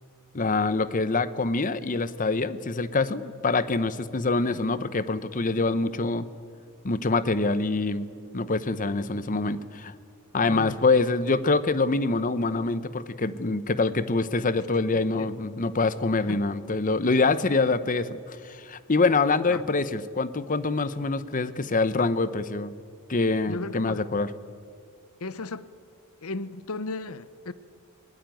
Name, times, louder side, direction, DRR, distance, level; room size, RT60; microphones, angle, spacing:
voice 1, 0.3-6.3 6.8-8.1 8.3-9.9 10.3-22.7 23.1-24.3, left 3 dB, 35° left, 14 dB, 0.8 m, -25 dB
voice 2, 10.5-10.8 14.9-15.3 16.3-16.4 19.5-19.6 23.5-24.0 25.2-25.7 26.2-27.5, left 3 dB, 70° left, 16 dB, 0.8 m, -35 dB
20.0 x 19.5 x 9.1 m, 2.1 s
head